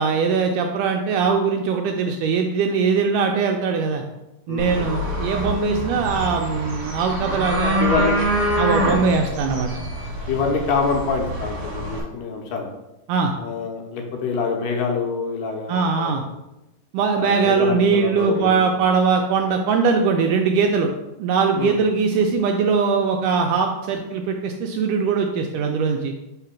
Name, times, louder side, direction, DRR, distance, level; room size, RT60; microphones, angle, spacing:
voice 1, 0.0-4.0 4.5-8.1 8.6-9.7 13.1-13.3 15.7-16.2 16.9-20.9 21.2-26.1, right 5 dB, 80° right, 3 dB, 1.9 m, -21 dB
voice 2, 4.5-4.9 7.8-8.2 8.9-9.1 10.3-12.7 13.4-16.1 17.2-18.7 21.5-21.8, left 4 dB, 75° left, 2 dB, 2.2 m, -26 dB
sound 1, 4.6-12.0, equal, 50° right, 1.5 m, -25 dB
4.9 x 3.7 x 5.7 m, 0.95 s
omnidirectional pair, 4.1 m